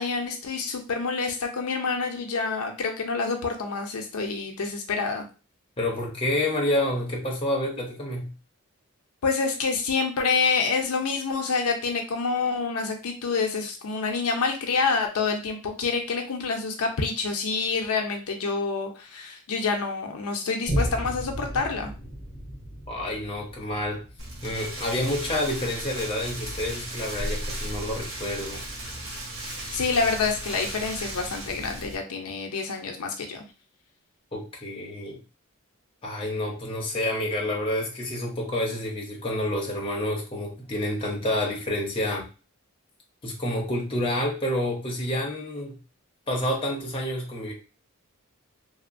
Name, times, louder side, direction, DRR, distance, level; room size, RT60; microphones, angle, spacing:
voice 1, 0.0-5.3 9.2-21.9 29.7-33.4, left 4 dB, 80° left, 3 dB, 0.5 m, -27 dB
voice 2, 5.8-8.3 22.9-24.0 24.4-28.6 34.3-35.2 36.0-42.2 43.2-45.8 46.3-47.5, left 1 dB, 25° left, -1 dB, 0.6 m, -28 dB
Boom, 20.7-27.6 28.1-28.2, equal, 5° right, 1.1 m, -35 dB
Rain, 24.2-31.9, right 1 dB, 65° right, 0.7 m, -35 dB
2.9 x 2.0 x 2.5 m, 0.33 s
head